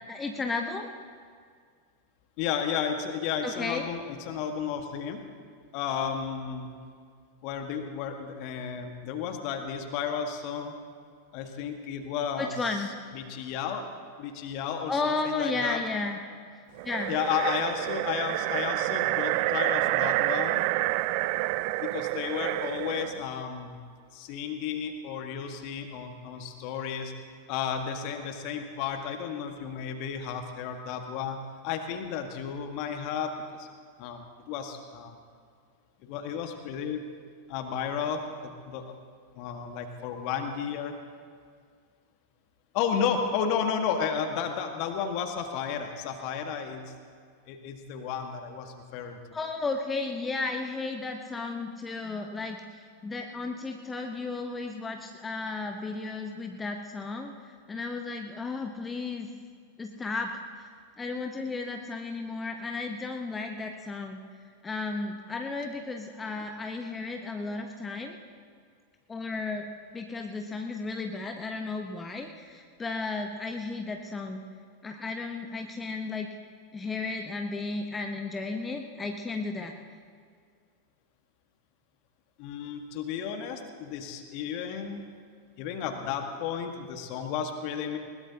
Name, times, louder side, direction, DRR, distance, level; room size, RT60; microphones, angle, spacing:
voice 1, 0.1-0.9 3.4-3.8 12.4-12.9 14.9-16.2 16.5-17.1 49.3-59.3 59.8-60.7 61.0-64.2 64.6-68.2 69.1-69.7 69.9-74.4 74.8-76.3 76.7-79.7, left 3 dB, 15° left, 4 dB, 1.0 m, -34 dB
voice 2, 2.4-5.2 5.7-6.7 7.4-10.7 11.3-12.8 13.1-13.8 14.2-15.8 17.1-20.6 21.8-23.8 24.1-27.1 27.5-33.7 34.0-35.2 36.0-37.0 37.5-38.9 39.3-40.9 42.7-46.9 47.5-49.4 82.4-85.0 85.6-88.0, left 7 dB, 45° left, 5 dB, 1.6 m, -33 dB
sound 1, 16.8-23.2, right 19 dB, 45° right, 0.3 m, -28 dB
20.5 x 20.5 x 2.9 m, 2.1 s
figure-of-eight pair, 90°, 0 cm